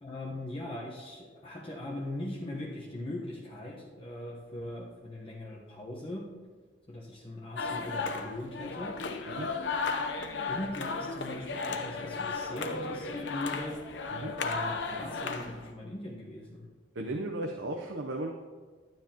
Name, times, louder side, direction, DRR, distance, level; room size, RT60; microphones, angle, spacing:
voice 1, 0.0-6.3 6.9-9.1 10.5-13.9 14.4-16.7, left 1 dB, 30° left, -4 dB, 1.1 m, -40 dB
sound 1, 7.6-15.7, left 4 dB, 75° left, 0.7 m, -35 dB
voice 2, 16.9-18.3, right 1 dB, 90° right, 1 dB, 0.8 m, -35 dB
12.0 x 9.4 x 2.9 m, 1.4 s
head